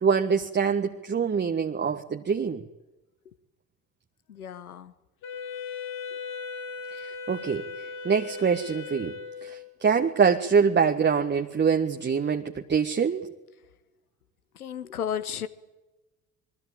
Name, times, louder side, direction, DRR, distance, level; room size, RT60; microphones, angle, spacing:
voice 1, 0.0-2.6 7.0-7.7 8.0-13.3, right 6 dB, 25° right, 4 dB, 1.5 m, -25 dB
voice 2, 4.3-4.9 14.5-15.5, left 8 dB, 80° left, 14 dB, 1.3 m, -33 dB
Wind instrument woodwind instrument, 5.2-9.8, left 5 dB, 60° left, 5.3 m, -38 dB
26.5 x 22.0 x 9.0 m, 1.1 s
figure-of-eight pair, 55°, 44 cm